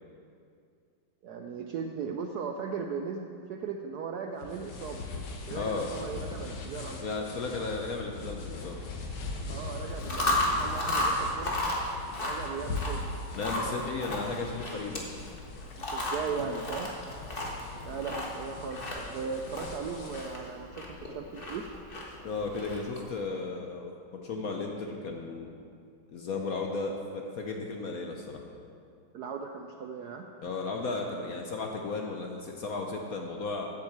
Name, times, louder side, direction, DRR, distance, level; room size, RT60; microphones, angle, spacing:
voice 1, 1.2-5.1 5.5-7.0 9.5-11.6 12.2-13.0 13.4-13.9 15.9-17.0 17.8-21.6 29.1-30.3, right 5 dB, 70° right, 4 dB, 0.9 m, -37 dB
sound 1, 4.4-20.4, left 3 dB, 80° left, 1.9 m, -42 dB
voice 2, 5.5-5.9 7.0-8.8 13.3-15.0 22.2-23.9 24.2-25.5 26.1-28.4 30.4-33.7, left 3 dB, 60° left, 2 dB, 1.0 m, -34 dB
sound 2, 6.0-16.3, left 3 dB, 5° left, 2.7 m, -46 dB
Chewing mastication, 9.9-23.1, left 1 dB, 30° left, 1.4 m, -34 dB
8.7 x 7.8 x 7.3 m, 2.4 s
omnidirectional pair, 2.2 m